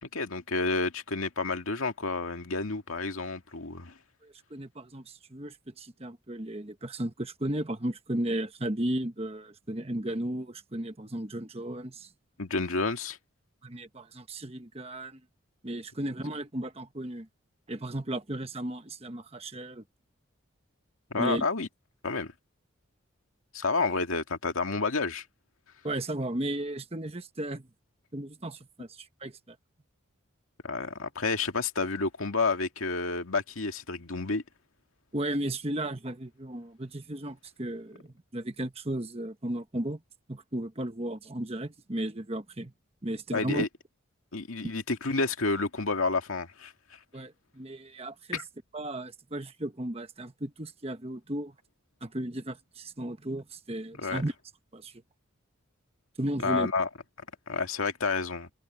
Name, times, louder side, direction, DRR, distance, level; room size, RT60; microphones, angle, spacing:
voice 1, 0.0-3.9 12.4-13.2 21.1-21.7 22.0-22.3 23.5-25.2 30.6-34.4 43.3-43.7 44.3-47.0 48.3-48.4 54.0-54.2 56.4-56.9 57.5-58.5, left 3 dB, 80° left, 2.1 m, -30 dB
voice 2, 4.2-12.1 13.6-15.2 15.6-17.3 17.7-19.8 21.1-21.4 25.8-27.7 28.1-29.6 35.1-40.0 40.3-42.7 43.0-43.7 47.1-48.4 48.7-51.5 52.0-54.3 54.7-54.9 56.2-56.7, right 1 dB, 30° right, 1.2 m, -35 dB
head